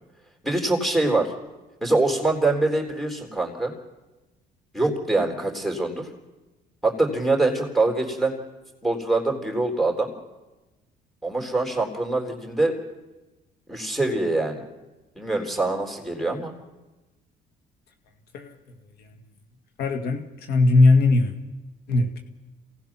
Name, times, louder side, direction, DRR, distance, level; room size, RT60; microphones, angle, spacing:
voice 1, 0.4-1.3 1.8-3.7 4.7-6.1 6.8-8.4 8.8-10.1 11.2-12.8 13.7-14.6 15.2-16.5, right 2 dB, ahead, 1 dB, 3.8 m, -24 dB
voice 2, 19.8-21.3 21.9-22.2, left 2 dB, 75° left, 5 dB, 1.9 m, -19 dB
27.5 x 18.0 x 6.0 m, 1.1 s
cardioid pair, 110°, 17 cm